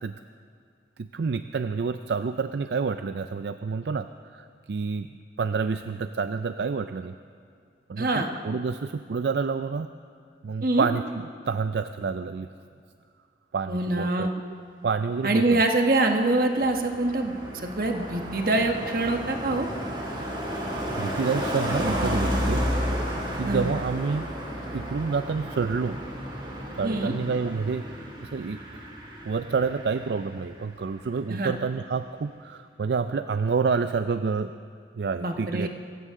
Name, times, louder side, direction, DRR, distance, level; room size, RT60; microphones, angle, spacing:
voice 1, 1.0-5.1 5.4-7.1 7.9-9.9 10.4-12.5 13.5-14.5 14.8-15.6 20.6-22.7 23.0-24.3 24.7-26.0 26.8-28.9 29.2-34.5 35.0-35.7, right 5 dB, 70° right, 10 dB, 0.4 m, -29 dB
voice 2, 8.0-8.3 10.6-10.9 13.7-14.3 15.2-19.7 23.5-23.7 26.8-27.1 31.3-31.5 35.2-35.7, right 2 dB, 50° right, 4 dB, 1.3 m, -25 dB
Car passing by, 15.9-30.7 30.9-31.2, equal, 25° right, 2.5 m, -32 dB
25.5 x 15.0 x 3.7 m, 2.3 s
head